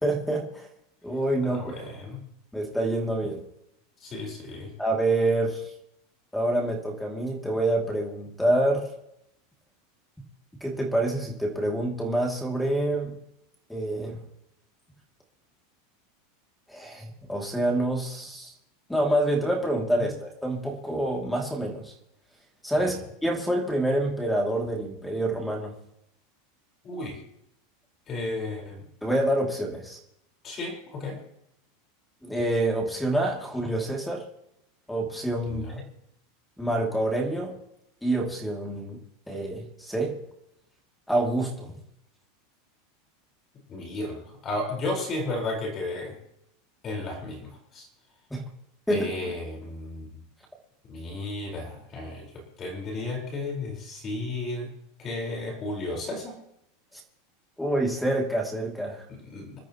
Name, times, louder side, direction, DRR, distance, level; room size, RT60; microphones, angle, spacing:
voice 1, 0.0-0.7 1.0-1.7 2.5-3.4 4.8-5.6 6.3-8.9 10.6-13.1 13.7-14.2 16.7-18.5 18.9-21.9 22.6-25.7 29.0-30.0 32.2-34.2 34.9-35.6 36.6-37.5 38.0-39.0 39.3-40.2 41.1-41.7 48.3-48.4 48.9-49.1 57.6-59.0, right 1 dB, 5° left, 1 dB, 2.6 m, -27 dB
voice 2, 1.5-2.2 4.0-4.7 20.0-20.1 22.8-22.9 26.8-27.2 28.1-28.8 30.4-31.2 35.5-35.8 43.7-46.2 46.8-47.4 47.7-47.9 48.9-50.1 50.9-52.3 52.6-54.7 55.0-56.4 59.1-59.6, left 2 dB, 25° left, 0 dB, 4.5 m, -33 dB
26.5 x 13.0 x 3.0 m, 0.78 s
supercardioid pair, 155°, 0 cm